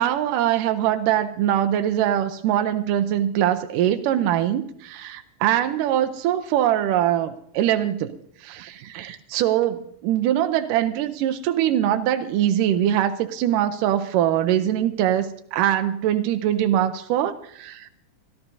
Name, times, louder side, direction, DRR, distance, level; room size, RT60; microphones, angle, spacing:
voice 1, 0.0-8.2 8.4-17.9, right 11 dB, 85° right, 8 dB, 2.3 m, -22 dB
24.5 x 14.0 x 2.7 m, 0.67 s
omnidirectional pair, 3.7 m